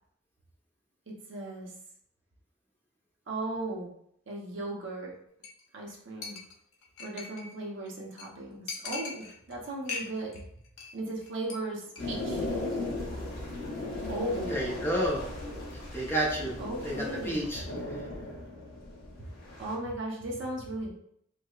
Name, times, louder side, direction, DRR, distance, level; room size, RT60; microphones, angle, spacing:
voice 1, 1.1-1.7 3.3-3.9 4.3-5.1 5.7-6.4 7.0-10.4 10.9-12.4 13.2-13.4 14.1-14.6 16.6-17.4 19.6-20.9, right 2 dB, 60° right, -2 dB, 0.7 m, -37 dB
Chink clink, 5.4-5.6 5.9-6.0 6.2-7.5 7.9-8.0 8.2-8.3 8.7-9.5 9.8-10.4 10.6-10.9 11.2-11.5 11.9-12.0, left 4 dB, 85° left, 0.7 m, -39 dB
sound 1, 12.0-19.8, left 2 dB, 45° left, 0.8 m, -37 dB
voice 2, 14.5-15.2 15.7-16.6 16.8-17.6, right 1 dB, 10° left, -4 dB, 0.6 m, -30 dB
4.6 x 2.0 x 2.3 m, 0.70 s
head